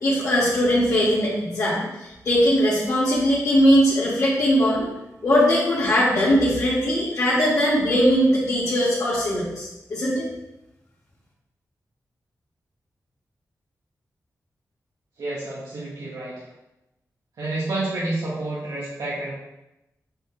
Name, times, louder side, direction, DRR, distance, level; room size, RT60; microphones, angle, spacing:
voice 1, 0.0-4.9 5.2-10.2, equal, 60° left, -12 dB, 2.5 m, -20 dB
voice 2, 15.2-16.3 17.4-19.3, right 2 dB, 90° right, -8 dB, 2.0 m, -29 dB
9.0 x 4.2 x 3.7 m, 0.93 s
wide cardioid pair, 115°, 6 cm